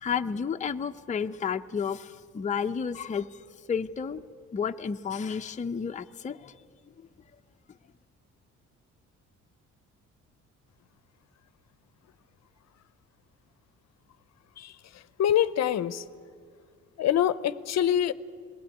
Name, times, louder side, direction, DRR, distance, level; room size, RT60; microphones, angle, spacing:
voice 1, 0.0-3.3 3.7-4.2 4.5-6.5, left 6 dB, 25° left, 7 dB, 0.5 m, -31 dB
voice 2, 15.2-16.0 17.0-18.1, left 10 dB, 60° left, 16 dB, 0.6 m, -25 dB
21.0 x 15.5 x 9.1 m, 2.2 s
cardioid pair, 90°, 30 cm